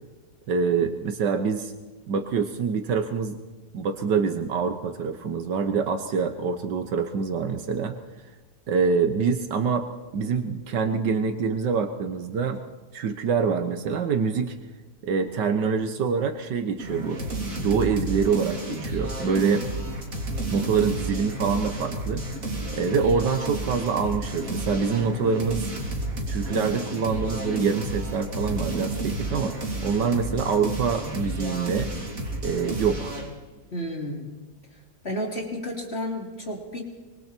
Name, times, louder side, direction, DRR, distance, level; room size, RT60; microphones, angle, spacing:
voice 1, 0.5-1.7 2.1-3.4 3.7-8.0 8.7-9.9 10.1-12.6 12.9-14.6 15.0-17.2 17.6-19.6 20.5-22.3 22.7-25.7 26.3-29.6 29.8-31.9 32.4-33.1, right 5 dB, 80° right, 6 dB, 1.8 m, -25 dB
sound 1, 16.8-33.3, right 2 dB, 50° right, 3.9 m, -31 dB
voice 2, 33.7-34.3 35.0-36.8, equal, 35° left, -1 dB, 3.6 m, -31 dB
25.5 x 24.5 x 4.5 m, 1.2 s
omnidirectional pair, 1.8 m